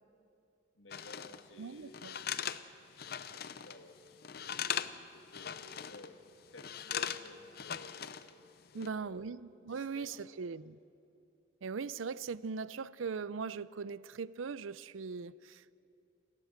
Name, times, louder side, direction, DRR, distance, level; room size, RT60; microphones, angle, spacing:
voice 1, 0.8-2.1 2.9-6.2 6.5-8.1 8.7-9.3 9.6-10.4, left 2 dB, 75° left, 5 dB, 2.2 m, -54 dB
sound 1, 0.9-1.4 1.9-3.8 4.1-5.0 5.3-6.1 6.6-8.3 8.7-8.9, left 9 dB, 50° left, 0.6 m, -39 dB
voice 2, 1.6-2.1 8.7-10.8 11.6-15.8, right 5 dB, 85° right, 19 dB, 0.5 m, -40 dB
29.0 x 13.0 x 8.0 m, 2.6 s
head